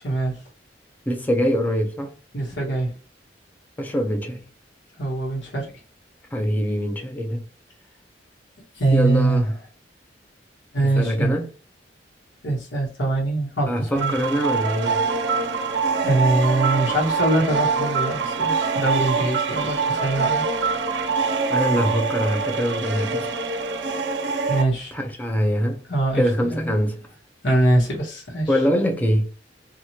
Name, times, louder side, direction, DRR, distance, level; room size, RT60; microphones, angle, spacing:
voice 1, 0.0-0.4 2.3-2.9 5.0-5.7 8.7-9.4 10.7-11.4 12.4-14.1 16.0-20.4 24.5-24.9 25.9-26.2 26.5-26.7 27.4-28.5, right 2 dB, 80° left, 1.1 m, -23 dB
voice 2, 1.1-2.1 3.8-4.4 6.3-7.4 8.9-9.5 11.0-11.5 13.7-15.0 21.5-23.3 24.9-25.8 26.1-27.0 28.5-29.3, equal, 10° left, 0.5 m, -23 dB
sound 1, 14.0-24.6, right 4 dB, 70° right, 0.5 m, -24 dB
2.9 x 2.3 x 2.8 m
head